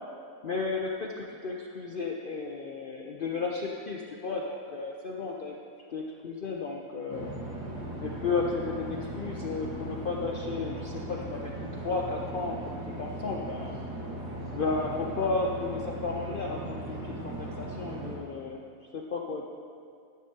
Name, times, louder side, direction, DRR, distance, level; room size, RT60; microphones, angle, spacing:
voice 1, 0.4-5.6 5.9-7.3 8.0-11.5 11.8-13.7 14.5-18.6 18.9-19.4, left 4 dB, 75° left, -1 dB, 0.4 m, -33 dB
sound 1, 7.1-18.2, right 1 dB, 75° right, 2.4 m, -38 dB
14.0 x 9.9 x 2.8 m, 2.2 s
omnidirectional pair, 1.8 m